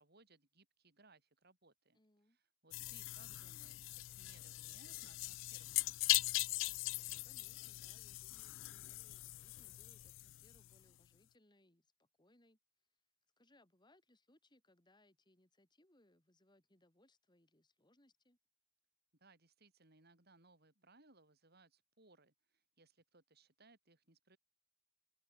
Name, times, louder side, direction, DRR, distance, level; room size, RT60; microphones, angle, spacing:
voice 1, 0.0-2.0 2.3-6.4 19.2-24.4, right 3 dB, 50° right, 4.9 m, -67 dB
voice 2, 1.9-2.4 2.8-3.0 7.1-12.9 13.4-18.4, left 1 dB, 20° left, 3.8 m, -72 dB
sound 1, 2.7-10.8, left 20 dB, 65° left, 0.3 m, -40 dB
head